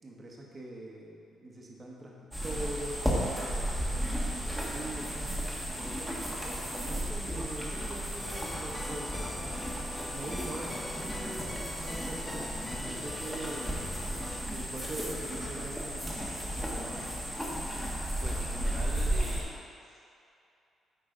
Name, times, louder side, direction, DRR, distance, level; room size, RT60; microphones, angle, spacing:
voice 1, 0.0-2.1 2.4-3.0 3.4-5.4 5.7-9.7 10.1-13.9 14.5-16.3 16.5-17.1, right 2 dB, 30° right, -2 dB, 1.3 m, -43 dB
sound 1, 2.3-19.4, equal, 5° right, 1.3 m, -34 dB
sound 2, 8.2-14.4, left 2 dB, 20° left, 0.5 m, -43 dB
voice 2, 18.2-19.5 19.8-20.0, right 3 dB, 60° right, -1 dB, 0.6 m, -43 dB
9.0 x 4.0 x 5.1 m, 2.6 s
cardioid pair, 115°, 0 cm